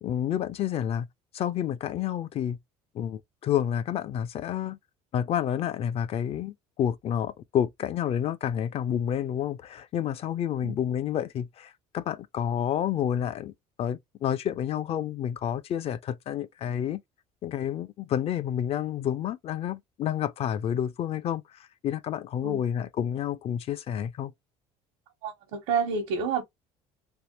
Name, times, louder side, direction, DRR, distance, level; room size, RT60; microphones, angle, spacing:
voice 1, 0.0-1.1 1.3-2.6 2.9-4.8 5.1-13.5 13.8-17.0 17.4-24.3, left 10 dB, 45° left, 0.5 m, -29 dB
voice 2, 25.2-26.4, right 6 dB, 85° right, 1.0 m, -29 dB
3.4 x 2.1 x 2.9 m
supercardioid pair, 100°, 14 cm